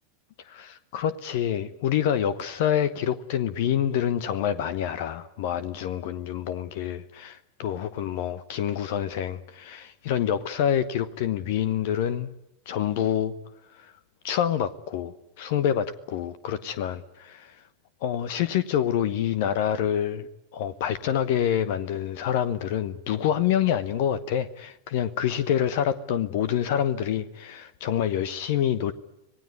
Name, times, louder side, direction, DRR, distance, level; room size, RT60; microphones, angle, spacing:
voice 1, 0.5-12.3 12.7-13.3 13.8-13.9 14.2-17.6 18.0-20.3 20.5-28.9, left 10 dB, 50° left, 1.0 m, -27 dB
26.0 x 19.0 x 9.5 m
figure-of-eight pair, 90°, 0 cm